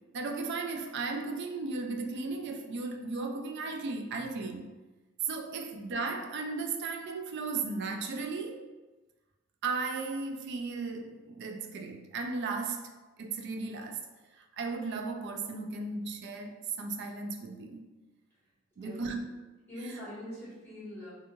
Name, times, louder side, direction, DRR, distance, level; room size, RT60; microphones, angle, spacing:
voice 1, 0.1-4.7 5.2-8.7 9.6-14.0 14.3-17.8 18.8-19.2, right 4 dB, 55° right, 4 dB, 0.3 m, -35 dB
voice 2, 18.7-19.4 19.7-21.1, left 1 dB, 10° left, -10 dB, 1.2 m, -43 dB
2.6 x 2.3 x 2.9 m, 1.2 s
head